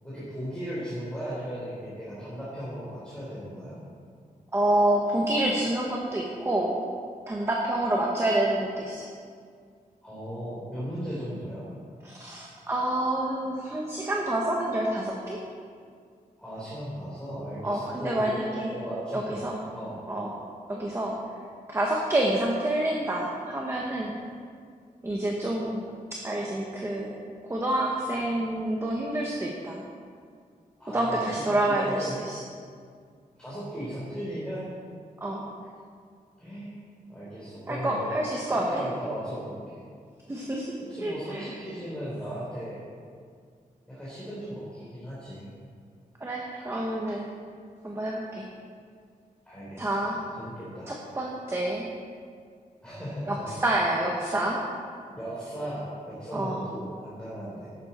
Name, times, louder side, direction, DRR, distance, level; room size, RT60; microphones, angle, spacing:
voice 1, 0.0-3.8 10.0-11.7 16.4-18.3 18.7-19.5 19.7-20.0 30.8-32.2 33.4-34.7 36.4-36.7 37.1-39.8 40.9-42.8 43.9-45.5 49.5-50.9 52.8-53.5 55.1-57.7, equal, 5° left, -10 dB, 3.5 m, -36 dB
voice 2, 4.5-6.8 7.3-9.1 12.0-15.4 17.6-18.7 19.1-19.6 20.1-20.3 20.7-21.1 21.7-24.2 25.0-25.8 26.1-27.1 27.5-29.8 30.9-32.4 35.2-35.4 37.7-38.8 40.3-40.7 41.0-41.5 46.2-47.3 47.8-48.4 49.8-50.2 50.9-51.9 53.3-54.6 56.3-56.6, right 1 dB, 15° right, -2 dB, 1.2 m, -28 dB
14.0 x 11.5 x 4.3 m, 2.1 s
wide cardioid pair, 175°, 15 cm